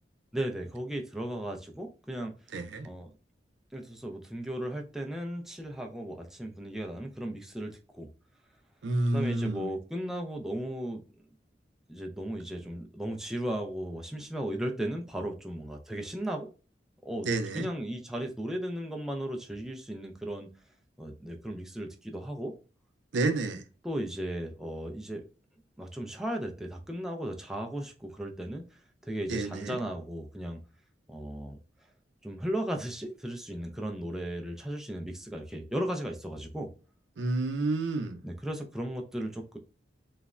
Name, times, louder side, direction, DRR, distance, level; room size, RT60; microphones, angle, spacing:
voice 1, 0.3-2.3 2.8-3.1 3.7-7.7 8.0-8.1 9.1-11.0 11.9-16.5 17.0-17.3 17.5-20.5 21.0-22.5 23.8-25.2 25.8-28.6 29.0-30.6 31.1-31.6 32.2-36.7 38.2-39.6, right 1 dB, 5° right, 0.3 m, -36 dB
voice 2, 2.5-2.9 8.8-9.7 17.2-17.7 23.1-23.6 29.3-29.8 37.2-38.2, right 2 dB, 90° right, 0.4 m, -29 dB
3.1 x 2.0 x 2.4 m
head